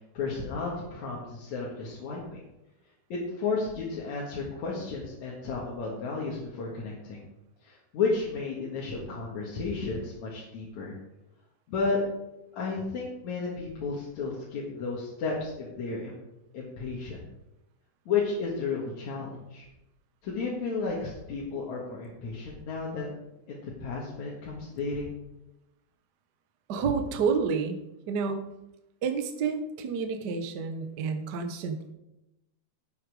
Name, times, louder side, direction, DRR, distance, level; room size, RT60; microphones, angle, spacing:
voice 1, 0.1-2.4 3.1-7.2 7.6-10.9 11.7-12.0 12.5-16.2 16.5-17.2 18.1-19.7 20.2-23.2 23.5-25.1, left 4 dB, 65° left, -4 dB, 3.1 m, -33 dB
voice 2, 26.7-27.8 28.1-28.4 29.0-31.9, right 5 dB, 80° right, 6 dB, 0.9 m, -29 dB
11.5 x 8.7 x 4.9 m, 0.91 s
omnidirectional pair, 3.6 m